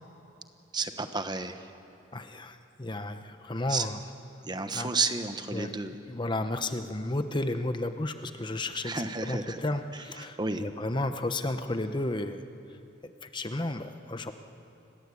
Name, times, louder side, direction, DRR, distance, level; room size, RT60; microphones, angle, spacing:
voice 1, 0.7-1.7 3.7-3.9 4.4-5.9 8.8-9.6 9.9-10.6, right 4 dB, 20° right, 8 dB, 1.1 m, -32 dB
voice 2, 2.1-4.0 4.7-4.9 5.5-5.7 6.1-12.4 13.0-14.3, left 2 dB, 25° left, 8 dB, 0.9 m, -33 dB
29.5 x 20.5 x 8.5 m, 3.0 s
head